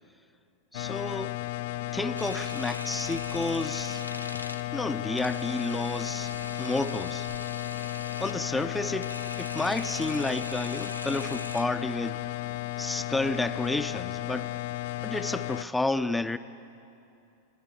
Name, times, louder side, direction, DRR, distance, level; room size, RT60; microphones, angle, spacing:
sound 1, 0.7-15.6, left 16 dB, 50° left, 0.5 m, -34 dB
voice 1, 0.7-1.4 1.9-4.0 4.7-6.3 6.6-7.3 8.2-12.2 12.8-14.5 15.0-16.4, left 2 dB, 5° left, 11 dB, 0.6 m, -31 dB
sound 2, 1.2-14.0, right 1 dB, 65° right, 6.2 m, -57 dB
Camera, 2.1-11.6, left 2 dB, 85° left, 0.8 m, -42 dB
29.5 x 10.0 x 8.6 m, 2.6 s
figure-of-eight pair, 90°, 0 cm